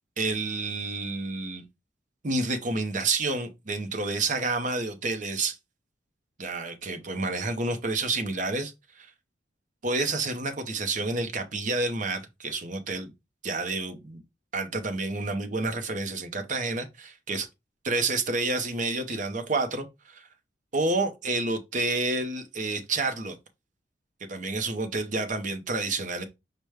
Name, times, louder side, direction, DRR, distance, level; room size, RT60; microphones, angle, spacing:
voice 1, 0.2-1.6 2.2-5.6 6.4-9.1 9.8-13.1 13.4-14.2 14.5-17.5 17.8-20.3 20.7-23.4 24.3-26.2, right 3 dB, 45° right, 0.8 m, -29 dB
5.0 x 2.2 x 4.8 m
head